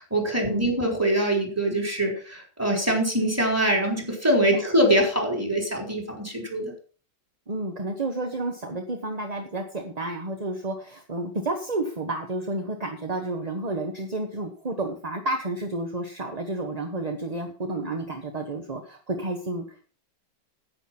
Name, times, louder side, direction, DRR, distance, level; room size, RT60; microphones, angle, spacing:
voice 1, 0.0-6.7, right 1 dB, 10° right, 1 dB, 3.9 m, -24 dB
voice 2, 7.5-19.9, right 2 dB, 25° right, 4 dB, 1.1 m, -31 dB
10.5 x 9.2 x 5.9 m, 0.40 s
omnidirectional pair, 2.0 m